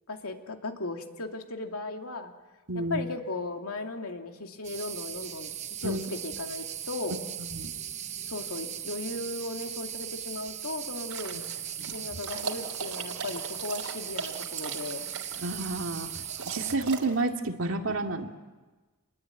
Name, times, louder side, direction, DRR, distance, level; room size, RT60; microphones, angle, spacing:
voice 1, 0.1-2.3 2.7-5.5 5.8-7.2 8.3-11.5 11.9-15.1, left 2 dB, 80° left, 3 dB, 2.7 m, -36 dB
voice 2, 2.7-3.0 5.8-6.1 7.4-7.7 11.8-12.0 15.4-18.4, right 2 dB, 60° right, 3 dB, 2.3 m, -31 dB
sound 1, 4.6-16.8, right 10 dB, 30° right, 0.9 m, -38 dB
sound 2, 11.1-17.2, right 5 dB, 90° right, 3.1 m, -39 dB
28.5 x 21.5 x 9.2 m, 1.3 s
head